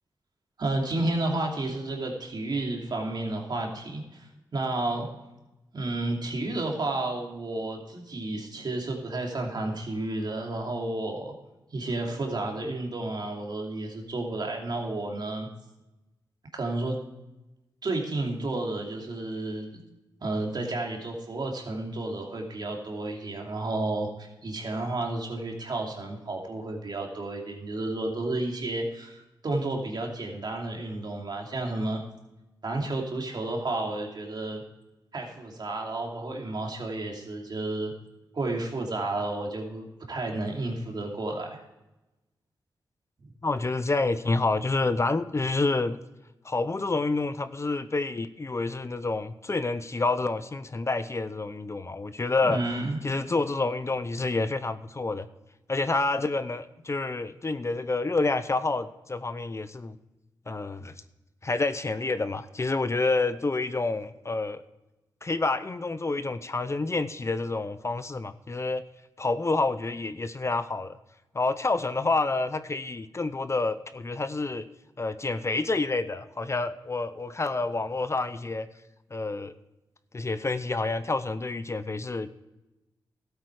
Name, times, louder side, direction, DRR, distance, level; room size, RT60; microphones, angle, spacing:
voice 1, 0.6-5.1 5.7-11.3 11.7-15.5 16.5-17.0 17.8-19.8 20.2-32.0 32.6-34.6 35.1-37.9 38.3-41.6 52.4-53.0, right 2 dB, 60° right, 1 dB, 2.7 m, -31 dB
voice 2, 43.4-46.0 46.4-52.6 53.0-55.3 55.7-60.0 60.5-60.9 61.4-64.6 65.2-68.8 69.2-71.0 71.3-74.7 75.0-78.7 79.1-79.5 80.1-82.3, left 3 dB, 35° left, 13 dB, 0.7 m, -28 dB
13.0 x 8.3 x 4.8 m, 0.99 s
cardioid pair, 55°, 8 cm